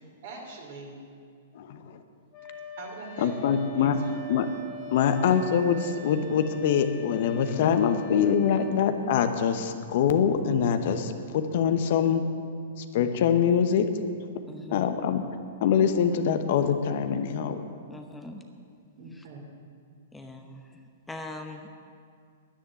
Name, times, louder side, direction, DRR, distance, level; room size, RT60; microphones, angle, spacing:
voice 1, 0.2-1.0 2.8-4.1 19.0-19.4, right 2 dB, 60° right, 1 dB, 3.3 m, -42 dB
voice 2, 1.5-2.0 3.2-4.0 4.3-4.5 4.9-12.2 12.8-13.9 14.7-15.2 15.6-17.6, left 7 dB, 55° left, 8 dB, 1.0 m, -24 dB
Wind instrument woodwind instrument, 2.3-8.9, equal, 30° left, 1.8 m, -43 dB
voice 3, 14.5-14.9 17.9-18.4 19.2-19.3 20.1-20.6 21.1-21.8, left 2 dB, 10° left, 4 dB, 0.9 m, -41 dB
10.0 x 10.0 x 8.8 m, 2.3 s
hypercardioid pair, 125°, 0 cm